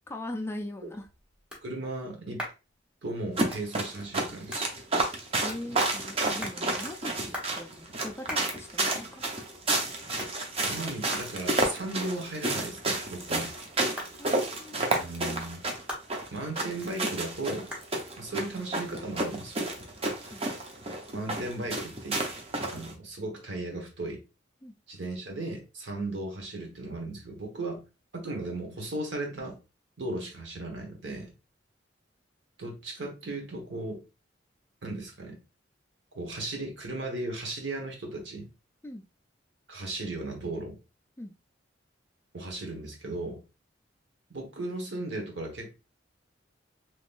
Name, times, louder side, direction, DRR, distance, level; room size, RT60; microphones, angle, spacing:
voice 1, 0.1-1.1 5.4-9.3 14.2-15.5 20.3-20.4 24.6-24.7 38.8-39.0 41.2-41.3, left 1 dB, 15° left, 4 dB, 0.3 m, -41 dB
sound 1, 0.6-19.9, equal, 5° right, 1.0 m, -46 dB
voice 2, 1.6-2.4 3.0-4.7 10.3-13.5 15.0-15.6 16.3-17.7 18.2-19.6 21.1-22.2 22.7-24.2 24.9-27.8 28.1-29.6 30.0-31.3 32.6-34.0 34.8-35.4 36.1-38.5 39.7-40.8 42.3-43.4 44.3-45.7, right 2 dB, 70° right, 2 dB, 1.1 m, -36 dB
sound 2, 3.4-22.9, right 2 dB, 30° right, 0.6 m, -31 dB
3.6 x 3.0 x 2.4 m, 0.28 s
head